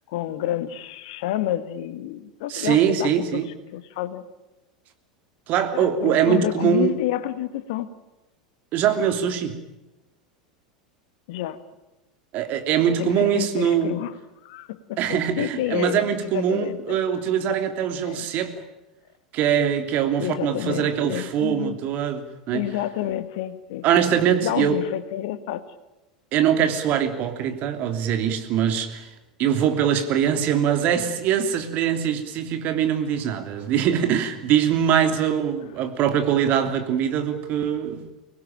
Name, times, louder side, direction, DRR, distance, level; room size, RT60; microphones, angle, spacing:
voice 1, 0.1-3.4 3.7-4.2 5.8-7.9 11.3-11.6 13.0-14.1 14.4-17.0 18.0-18.3 20.2-21.8 22.5-24.0 24.4-25.6, left 13 dB, 60° left, 12 dB, 1.8 m, -29 dB
voice 2, 2.5-3.5 5.5-7.0 8.7-9.6 12.3-14.0 15.0-18.5 19.3-22.7 23.8-24.8 26.3-29.1 29.4-38.0, right 9 dB, 45° right, 7 dB, 3.0 m, -22 dB
24.0 x 20.0 x 9.0 m, 1.0 s
figure-of-eight pair, 85°, 4 cm